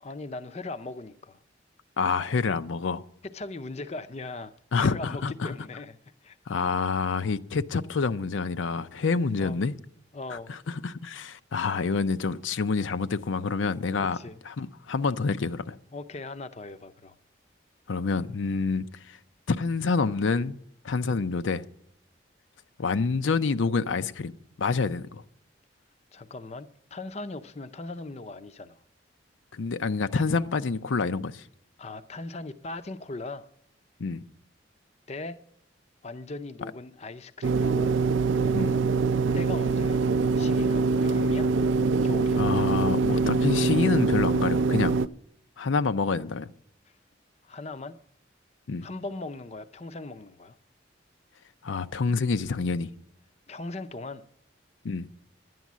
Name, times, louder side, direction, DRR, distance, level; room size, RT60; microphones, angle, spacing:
voice 1, 0.0-1.4 3.2-4.5 4.8-6.4 9.4-9.6 10.1-10.5 14.1-14.4 15.9-17.2 26.1-28.8 31.8-33.5 35.1-35.4 36.0-37.9 39.3-40.0 40.4-41.5 42.0-42.5 47.4-48.0 48.8-50.6 53.5-54.2, left 2 dB, 35° left, 0.5 m, -39 dB
voice 2, 2.0-3.0 4.7-5.5 6.5-9.7 10.5-14.2 14.4-15.8 17.9-19.2 19.5-20.6 20.8-21.6 22.8-24.3 24.6-25.2 29.5-31.4 34.0-34.2 38.5-38.7 42.4-45.0 45.6-46.5 48.7-48.9 51.6-52.9 54.8-55.1, left 4 dB, 85° left, 0.5 m, -27 dB
sound 1, 37.4-45.1, right 4 dB, 80° right, 0.4 m, -24 dB
11.0 x 9.4 x 7.3 m
head